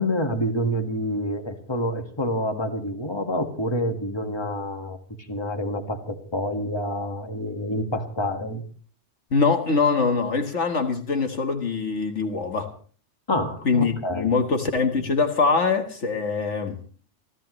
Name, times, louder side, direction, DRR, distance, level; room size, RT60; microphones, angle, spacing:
voice 1, 0.0-5.0 5.3-8.6 13.3-14.3, left 1 dB, 20° left, 5 dB, 1.8 m, -27 dB
voice 2, 9.3-12.7 13.7-16.8, left 4 dB, 70° left, 5 dB, 1.9 m, -23 dB
28.5 x 13.5 x 3.2 m, 0.43 s
omnidirectional pair, 1.3 m